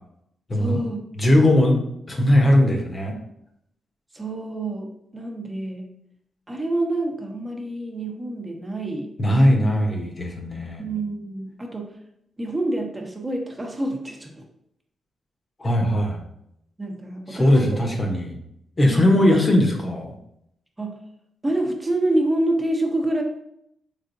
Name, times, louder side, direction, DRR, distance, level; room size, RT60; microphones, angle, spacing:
voice 1, 0.5-1.1 4.1-5.9 6.5-9.1 10.8-11.9 12.4-14.4 15.6-15.7 16.8-17.8 18.8-19.3 20.8-21.0 21.4-23.2, right 1 dB, 25° right, 1 dB, 0.9 m, -27 dB
voice 2, 1.2-1.8 2.1-3.1 9.2-10.8 15.6-16.2 17.3-18.3 18.8-20.1, left 1 dB, 40° left, 2 dB, 0.9 m, -19 dB
3.6 x 3.3 x 2.6 m, 0.75 s
supercardioid pair, 55°, 0 cm